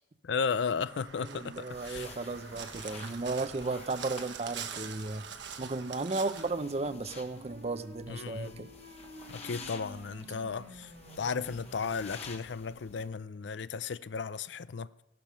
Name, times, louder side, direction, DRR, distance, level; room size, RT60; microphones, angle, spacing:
voice 1, 0.2-2.1 8.1-8.7 9.3-10.9 11.2-14.9, left 5 dB, 80° left, 0.5 m, -34 dB
Crow, 0.7-6.5, right 7 dB, 85° right, 1.1 m, -44 dB
voice 2, 1.2-5.2 5.6-8.7, right 3 dB, 35° right, 0.7 m, -35 dB
sound 1, 1.7-13.1, left 4 dB, 35° left, 1.4 m, -51 dB
sound 2, 6.4-12.4, equal, 70° right, 1.9 m, -51 dB
15.5 x 12.0 x 5.5 m
head